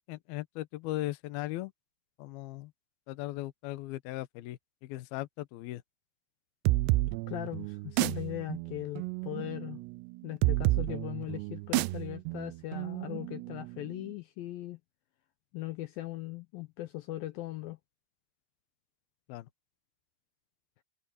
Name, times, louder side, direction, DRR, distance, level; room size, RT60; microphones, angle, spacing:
voice 1, 0.1-1.7 2.2-2.7 3.1-5.8 19.3-19.5, left 16 dB, 70° left, 2.6 m, -38 dB
sound 1, 6.6-14.0, right 19 dB, 80° right, 2.7 m, -31 dB
voice 2, 7.3-9.8 10.2-14.8 15.5-17.8, left 16 dB, 85° left, 2.1 m, -39 dB
omnidirectional pair, 5.0 m